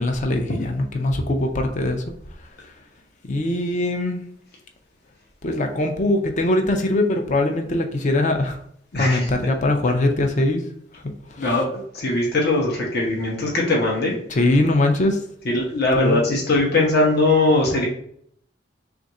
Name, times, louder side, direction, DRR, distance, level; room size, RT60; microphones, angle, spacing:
voice 1, 0.0-2.0 3.3-4.2 5.4-8.6 9.0-10.6 14.4-15.2 16.0-16.2, left 2 dB, 40° left, 4 dB, 0.5 m, -21 dB
voice 2, 8.9-9.3 11.4-14.2 15.4-17.9, left 2 dB, 55° left, -2 dB, 0.9 m, -20 dB
3.5 x 2.5 x 4.1 m, 0.66 s
head